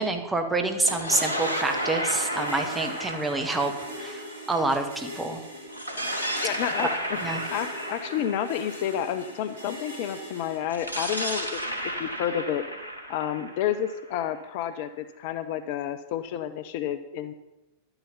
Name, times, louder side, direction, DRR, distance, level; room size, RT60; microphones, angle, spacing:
voice 1, 0.0-3.7 4.0-5.4 6.8-6.9 7.2-7.4, right 2 dB, 10° right, 5 dB, 1.3 m, -27 dB
sound 1, 0.7-5.1 5.7-9.6 10.7-14.5, equal, 85° left, 1.3 m, -33 dB
sound 2, 1.1-10.6, equal, 65° right, 4.7 m, -42 dB
voice 2, 6.4-6.9 7.5-11.6 12.0-12.6 13.1-17.3, left 10 dB, 50° left, 12 dB, 0.6 m, -30 dB
11.5 x 8.9 x 5.4 m, 0.98 s
figure-of-eight pair, 90°, 0 cm